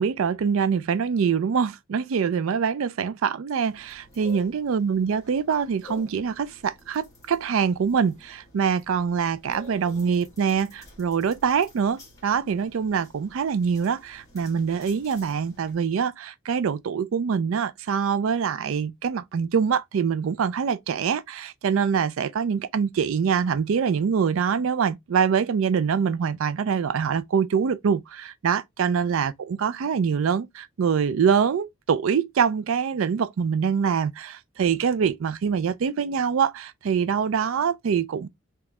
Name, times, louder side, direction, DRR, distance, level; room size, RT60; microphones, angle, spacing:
voice 1, 0.0-38.3, right 6 dB, 80° right, 0.4 m, -24 dB
sound 1, 3.6-15.7, left 3 dB, 15° left, 1.4 m, -49 dB
3.3 x 3.0 x 3.5 m
head